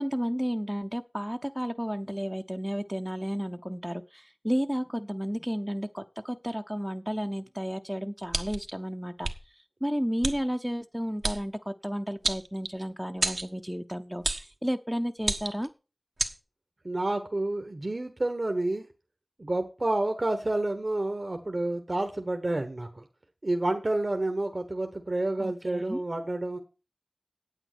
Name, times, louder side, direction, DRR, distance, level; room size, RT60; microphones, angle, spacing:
voice 1, 0.0-9.3 9.8-15.7 25.4-26.0, equal, 5° right, 6 dB, 0.7 m, -32 dB
sound 1, 8.3-8.7 9.2-9.4 10.2-10.4 11.2-11.4 12.2-12.8 13.2-13.5 14.2-14.5 15.2-15.7 16.2-16.3, right 2 dB, 75° right, 1.3 m, -30 dB
voice 2, 16.8-18.9 19.4-23.0 23.4-26.6, right 2 dB, 60° right, 6 dB, 1.3 m, -29 dB
9.0 x 8.7 x 6.1 m, 0.32 s
wide cardioid pair, 40°, 0 cm